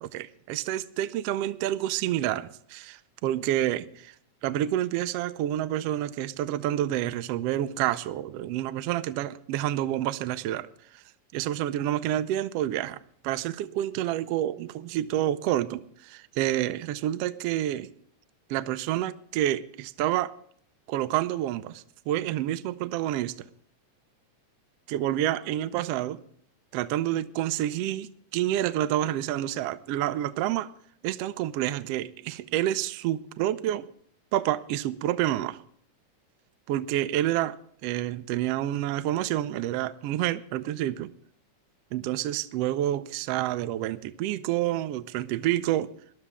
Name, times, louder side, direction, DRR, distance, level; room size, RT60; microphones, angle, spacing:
voice 1, 0.0-4.1 4.4-10.7 10.9-11.0 11.3-13.0 13.2-17.9 18.5-20.3 20.9-23.5 24.9-26.2 26.7-30.7 31.0-33.9 34.3-35.6 36.7-37.6 37.8-41.1 41.9-45.9, right 13 dB, 85° right, 1.3 m, -28 dB
20.0 x 12.0 x 3.5 m
omnidirectional pair, 3.5 m